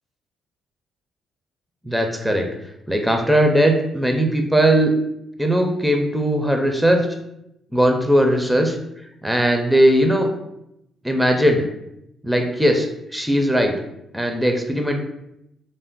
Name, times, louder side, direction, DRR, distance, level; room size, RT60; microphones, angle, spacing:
voice 1, 1.8-2.5 2.9-4.9 5.4-7.1 7.7-8.8 9.2-10.3 11.0-11.7 12.2-12.9 13.1-13.7 14.1-15.0, equal, 5° right, 3 dB, 0.4 m, -18 dB
2.5 x 2.0 x 3.6 m, 0.83 s
cardioid pair, 90°, 0 cm